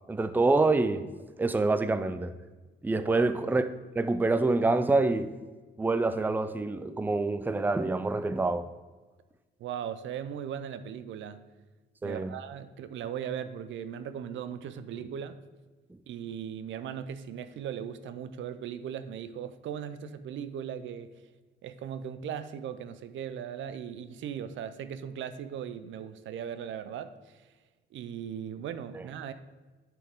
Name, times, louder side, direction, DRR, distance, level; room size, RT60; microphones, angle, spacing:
voice 1, 0.1-1.1 1.4-2.3 2.8-3.7 4.0-5.3 5.8-8.7 12.0-12.3 28.9-29.0, right 3 dB, 10° right, 0.4 m, -26 dB
voice 2, 9.6-11.4 12.0-15.4 16.1-21.1 21.6-27.4 27.9-29.3, right 8 dB, 75° right, 0.5 m, -38 dB
8.4 x 5.9 x 3.6 m
cardioid pair, 90°, 20 cm